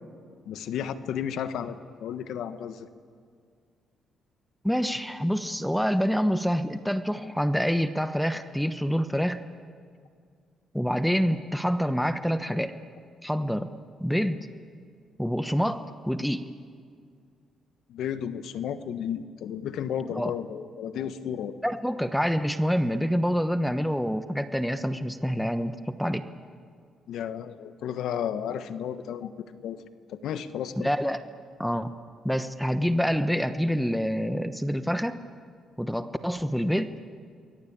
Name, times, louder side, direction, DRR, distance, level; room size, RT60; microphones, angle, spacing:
voice 1, 0.4-2.9 17.9-21.6 27.1-29.8 30.1-30.9, left 9 dB, 80° left, 11 dB, 1.3 m, -33 dB
voice 2, 4.6-9.4 10.7-12.7 13.2-13.7 14.0-14.5 15.2-16.5 20.1-20.3 21.6-26.2 30.8-31.2 31.6-31.9 32.2-35.2 35.8-37.1, equal, ahead, 10 dB, 1.1 m, -27 dB
28.0 x 22.0 x 8.8 m, 2.1 s
cardioid pair, 90°, 0 cm